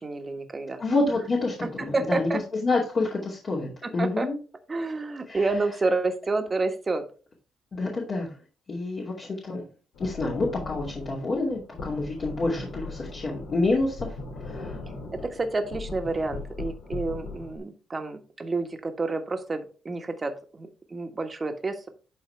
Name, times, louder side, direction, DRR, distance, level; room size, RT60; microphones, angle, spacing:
voice 1, 0.0-0.8 1.8-2.4 3.8-4.3 4.7-7.1 15.1-21.9, right 3 dB, 30° right, 6 dB, 1.5 m, -29 dB
voice 2, 0.8-2.3 2.6-4.4 5.3-5.5 7.7-8.3 8.7-9.6 10.0-14.8, left 2 dB, 45° left, -3 dB, 2.4 m, -28 dB
sound 1, 9.9-17.6, left 3 dB, 80° left, 3.0 m, -39 dB
11.5 x 4.1 x 3.4 m, 0.35 s
cardioid pair, 90°, 0 cm